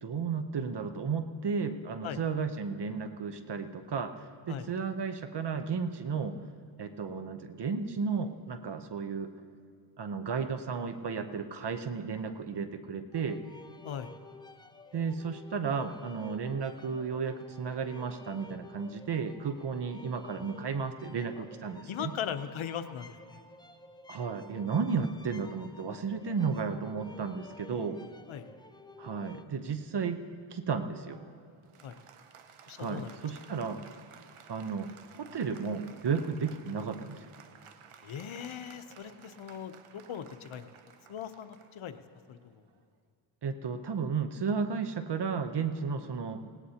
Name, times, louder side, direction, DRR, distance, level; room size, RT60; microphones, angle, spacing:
voice 1, 0.0-6.4 6.8-9.3 10.0-13.4 14.9-22.1 24.1-28.0 29.0-30.2 30.5-31.2 32.8-33.9 34.5-37.2 43.4-46.4, right 5 dB, 55° right, 9 dB, 0.9 m, -33 dB
sound 1, 13.1-29.4, left 3 dB, 10° left, 0.5 m, -52 dB
voice 2, 21.9-23.4 27.7-27.9 28.3-28.5 31.8-32.0 32.7-33.2 38.0-40.7 41.1-42.0 42.3-42.6, left 8 dB, 75° left, 10 dB, 0.8 m, -39 dB
Applause, 31.1-43.0, right 7 dB, 90° right, 0.8 m, -56 dB
18.5 x 18.0 x 2.9 m, 2.3 s
cardioid pair, 65°, 48 cm